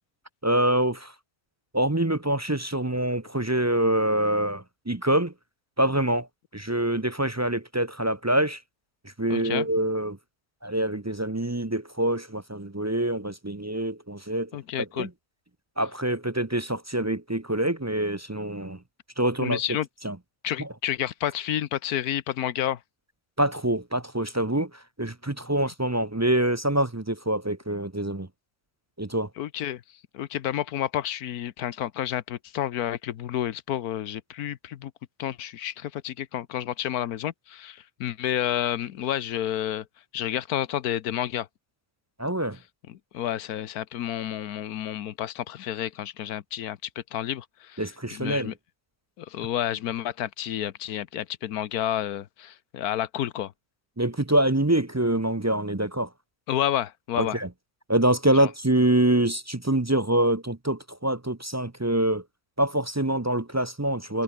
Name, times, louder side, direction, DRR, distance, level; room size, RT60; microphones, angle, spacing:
voice 1, 0.4-1.1 1.7-5.3 5.8-6.3 6.5-8.6 9.2-10.2 10.6-14.5 14.8-15.1 15.8-18.8 19.2-19.6 20.0-20.2 20.6-20.7 23.4-28.3 29.0-29.3 42.2-42.6 47.8-48.5 54.0-56.1 57.2-57.5 57.9-62.2 62.6-64.2, right 1 dB, 15° right, 0.6 m, -25 dB
voice 2, 9.3-9.7 14.5-15.1 19.4-19.9 20.4-22.8 29.4-29.8 30.1-34.9 35.2-39.8 40.1-41.5 42.9-46.8 47.1-48.5 49.2-53.5 56.5-57.4 58.4-58.5, left 11 dB, 90° left, 1.4 m, -30 dB
omnidirectional pair, 1.5 m